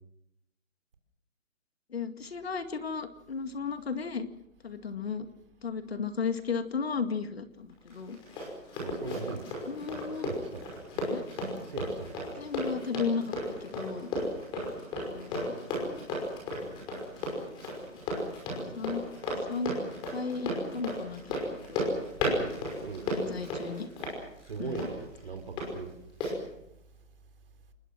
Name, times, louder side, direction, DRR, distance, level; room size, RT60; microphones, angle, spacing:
voice 1, 1.9-4.3 4.6-5.3 5.6-8.2 9.7-10.3 11.1-11.2 12.4-13.2 13.6-14.1 15.1-15.5 18.7-19.0 19.5-19.8 20.1-21.2 21.7-21.8 23.1-23.9 24.6-24.9 26.3-26.4, left 5 dB, 50° left, 2.2 m, -34 dB
Run, 7.9-25.7 26.2-26.3, left 1 dB, 10° left, 5.5 m, -34 dB
voice 2, 8.8-9.5 10.2-10.7 11.7-12.3 22.8-23.3 24.5-25.9, right 5 dB, 45° right, 3.7 m, -39 dB
29.0 x 21.0 x 6.2 m
hypercardioid pair, 170°, 40 cm